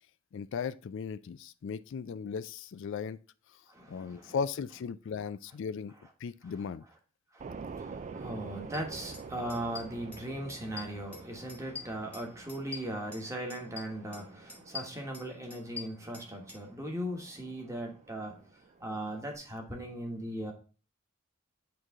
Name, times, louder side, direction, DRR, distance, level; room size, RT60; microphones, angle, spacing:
voice 1, 0.3-3.2 3.9-5.9 6.2-6.8, left 6 dB, 60° left, 0.3 m, -37 dB
voice 2, 3.7-4.3 7.3-18.4 18.8-20.5, right 1 dB, 15° right, 1.3 m, -38 dB
sound 1, 7.4-19.4, right 5 dB, 35° right, 0.3 m, -48 dB
sound 2, 8.7-8.8 9.1-9.2 9.5-10.2 10.5-11.2 11.5-13.3 13.5-14.2 14.5-16.6, left 4 dB, 5° left, 1.2 m, -44 dB
8.8 x 3.2 x 3.6 m
head